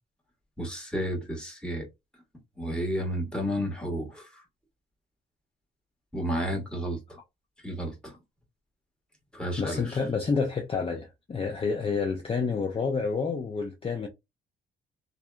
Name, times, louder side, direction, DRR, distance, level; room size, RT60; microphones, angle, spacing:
voice 1, 0.6-1.8 2.6-4.3 6.1-7.2 7.6-8.1 9.3-10.0, equal, 5° left, 1.3 m, -31 dB
voice 2, 9.6-14.1, left 5 dB, 30° left, 0.6 m, -29 dB
2.7 x 2.4 x 2.2 m
cardioid pair, 90°, 20 cm